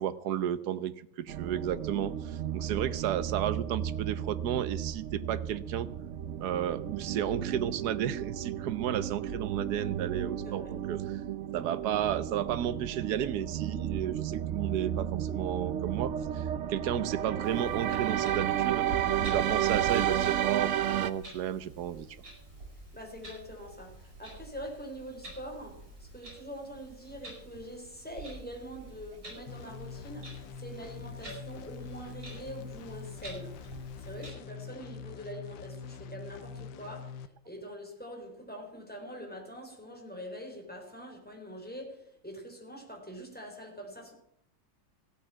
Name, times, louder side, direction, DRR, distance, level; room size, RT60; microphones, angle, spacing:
voice 1, 0.0-5.9 6.4-11.2 11.5-18.9 19.2-22.1, right 10 dB, 60° right, 1.3 m, -33 dB
sound 1, 1.3-21.1, right 10 dB, 85° right, 0.6 m, -33 dB
voice 2, 10.4-10.7 22.9-44.1, equal, 5° left, 3.9 m, -44 dB
Clock, 17.4-34.3, right 3 dB, 45° right, 8.6 m, -47 dB
sound 2, 29.5-37.3, left 5 dB, 75° left, 1.5 m, -44 dB
15.5 x 9.1 x 7.5 m
omnidirectional pair, 2.1 m